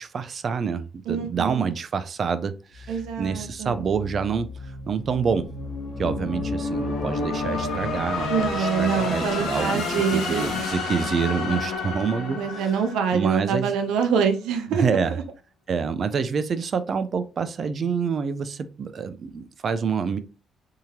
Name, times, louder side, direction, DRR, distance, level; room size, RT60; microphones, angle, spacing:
voice 1, 0.0-4.5 4.9-5.5 6.0-9.8 10.1-12.7 13.1-13.7 14.7-15.2 15.7-20.2, right 6 dB, 50° right, 0.5 m, -27 dB
voice 2, 1.1-1.7 2.9-3.8 8.3-10.5 12.3-14.9, right 7 dB, 85° right, 0.7 m, -25 dB
sound 1, 2.8-13.8, left 3 dB, 90° left, 1.3 m, -30 dB
3.6 x 2.8 x 3.0 m
cardioid pair, 90°, 0 cm